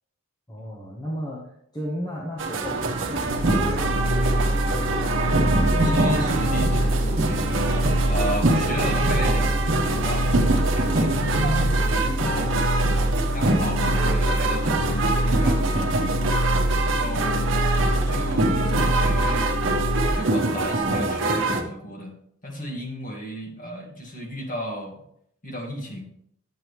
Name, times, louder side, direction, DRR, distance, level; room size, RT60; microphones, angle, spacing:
voice 1, 0.5-5.0, equal, 20° left, -3 dB, 1.1 m, -35 dB
sound 1, 2.4-21.6, right 2 dB, 60° right, 1.1 m, -25 dB
sound 2, 2.6-11.1, right 3 dB, 30° right, 0.3 m, -34 dB
sound 3, 3.3-20.1, equal, 80° left, 0.8 m, -25 dB
voice 2, 5.7-7.7 8.1-10.3 10.7-12.7 13.3-16.2 16.7-17.5 17.9-19.5 20.1-22.2 22.4-25.0 25.4-26.1, equal, 40° left, 1 dB, 1.8 m, -33 dB
10.0 x 7.5 x 3.2 m, 0.70 s
head